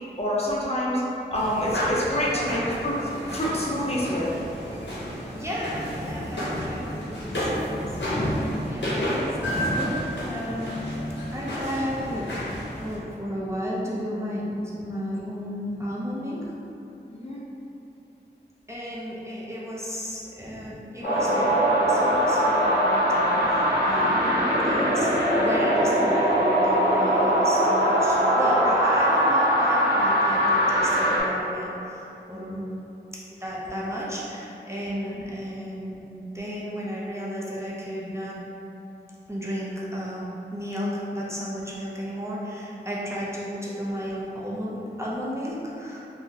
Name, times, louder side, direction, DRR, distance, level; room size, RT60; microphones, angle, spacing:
voice 1, 0.2-1.0 1.3-3.0 3.3-4.3 17.1-17.4 20.4-20.6 24.0-24.3 32.3-32.7, equal, 35° left, -6 dB, 0.6 m, -28 dB
sound 1, 1.4-13.0, equal, 80° left, 0.7 m, -30 dB
voice 2, 2.3-2.6 5.3-7.9 8.7-10.8 11.3-12.4 12.8-16.5 18.7-24.4 24.6-32.6 33.4-38.4 39.3-46.1, equal, 15° right, -7 dB, 0.5 m, -33 dB
sound 2, 21.0-31.2, equal, 55° left, 1.1 m, -21 dB
3.7 x 2.1 x 2.7 m, 2.8 s
wide cardioid pair, 55°, 18 cm